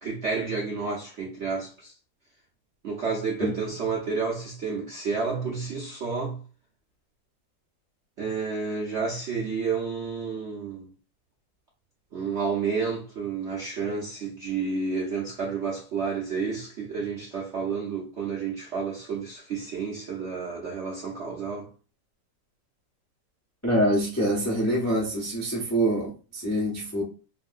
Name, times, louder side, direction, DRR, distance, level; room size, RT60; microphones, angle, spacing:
voice 1, 0.0-1.9 2.8-6.4 8.2-10.9 12.1-21.7, right 5 dB, 60° right, 0.7 m, -30 dB
voice 2, 23.6-27.0, right 1 dB, 20° left, 0.4 m, -25 dB
3.0 x 2.7 x 2.4 m
omnidirectional pair, 2.0 m